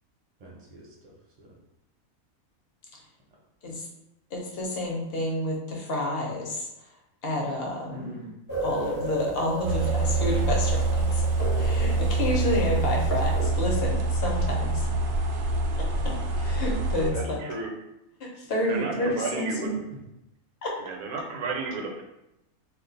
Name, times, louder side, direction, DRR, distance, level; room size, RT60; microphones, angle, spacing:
voice 1, 0.4-1.5 7.9-8.3 10.3-10.4 12.3-12.8 13.1-13.5 16.4-16.5 18.9-19.1 19.9-20.0, equal, 40° right, -3 dB, 0.6 m, -44 dB
voice 2, 4.3-6.7 7.2-8.2 8.6-10.8 11.1-11.2 11.6-13.3 13.6-14.9 16.0-17.4 18.2-19.8 20.6-20.7, left 1 dB, 50° left, -2 dB, 0.8 m, -29 dB
sound 1, 8.5-13.5, right 1 dB, 30° left, 0.4 m, -35 dB
sound 2, 9.6-17.1, right 3 dB, 90° right, 0.4 m, -25 dB
voice 3, 17.1-17.7 18.7-19.7 20.8-22.0, right 4 dB, 75° right, 3 dB, 1.0 m, -32 dB
2.5 x 2.3 x 3.8 m, 0.88 s
omnidirectional pair, 1.5 m